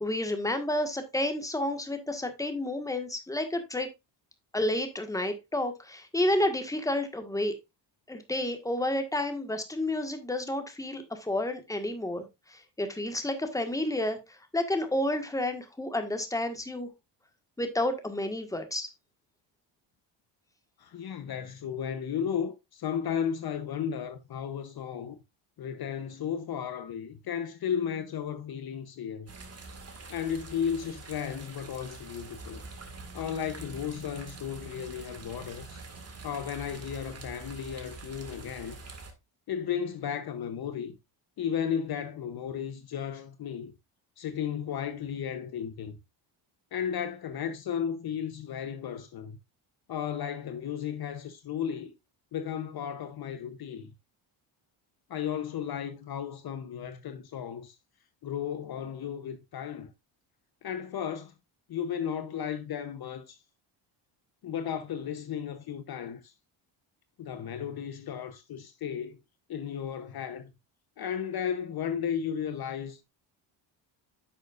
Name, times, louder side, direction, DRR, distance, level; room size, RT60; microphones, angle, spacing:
voice 1, 0.0-3.9 4.5-7.5 8.1-14.2 14.5-16.9 17.6-18.9, left 1 dB, 5° left, 1.5 m, -30 dB
voice 2, 20.8-25.2 25.6-29.3 30.1-32.6 33.1-35.8 36.2-38.8 39.5-41.0 41.4-43.7 44.2-46.0 46.7-49.4 49.9-51.9 52.3-53.9 55.1-57.8 58.2-59.9 60.6-61.3 61.7-63.4 64.4-66.3 67.2-69.2 69.5-70.5 71.0-73.0, left 8 dB, 50° left, 0.9 m, -34 dB
sound 1, 29.3-39.1, right 3 dB, 30° right, 1.9 m, -45 dB
10.0 x 6.6 x 2.5 m
cardioid pair, 110°, 49 cm